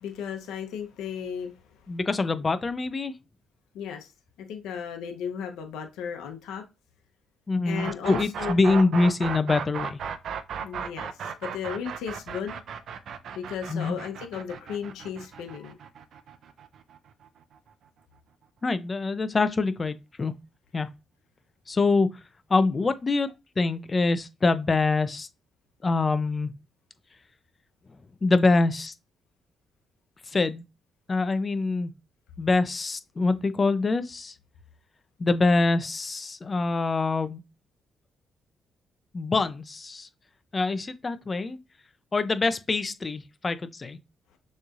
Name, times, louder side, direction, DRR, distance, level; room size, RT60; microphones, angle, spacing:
voice 1, 0.0-1.5 3.7-4.1 4.4-6.6 7.6-8.9 10.6-12.6 13.3-15.7, left 7 dB, 90° left, 0.8 m, -35 dB
voice 2, 1.9-3.1 7.5-10.0 13.7-13.9 18.6-20.3 20.7-20.9 21.7-22.1 22.5-23.3 23.6-25.3 25.8-26.5 28.2-28.9 30.3-30.6 31.1-31.9 32.4-34.3 35.2-37.4 39.1-40.1 40.5-41.6 42.1-44.0, left 3 dB, 30° left, 0.5 m, -25 dB
sound 1, 7.7-17.6, right 7 dB, 65° right, 0.6 m, -36 dB
6.4 x 3.1 x 2.5 m
cardioid pair, 90°, 0 cm